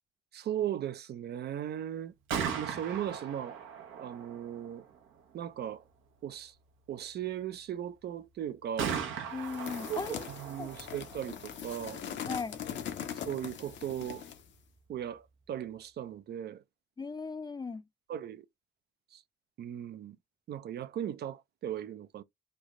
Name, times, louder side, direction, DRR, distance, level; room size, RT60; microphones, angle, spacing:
voice 1, 0.3-2.1 2.4-3.6 4.0-4.9 5.3-5.8 6.2-6.5 6.9-9.0 9.9-10.0 10.3-12.0 13.3-14.2 14.9-16.6 18.1-18.5 19.1-19.2 19.6-20.2 20.5-22.2, right 10 dB, 55° right, 0.4 m, -37 dB
Gunshot gunfire, 2.1-15.9, right 7 dB, 85° right, 0.8 m, -42 dB
voice 2, 9.3-10.2 10.6-10.7 12.3-12.6 17.0-17.8, left 4 dB, 20° left, 0.5 m, -37 dB
sound 1, 9.4-14.5, left 9 dB, 65° left, 0.7 m, -41 dB
3.2 x 2.1 x 3.6 m
cardioid pair, 90°, 20 cm